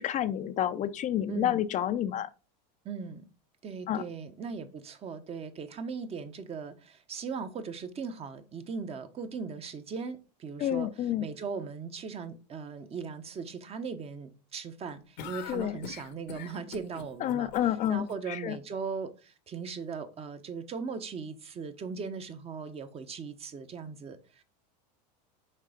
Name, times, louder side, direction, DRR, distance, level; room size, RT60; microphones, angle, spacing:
voice 1, 0.0-2.3 3.9-4.0 10.6-11.3 15.5-15.8 17.2-18.6, left 11 dB, 35° left, 0.6 m, -29 dB
voice 2, 1.3-1.6 2.8-3.3 3.6-17.5 17.9-24.4, right 5 dB, 30° right, 1.1 m, -39 dB
sound 1, 15.2-18.1, left 8 dB, 85° left, 1.4 m, -43 dB
6.6 x 4.8 x 5.0 m
supercardioid pair, 115°, 21 cm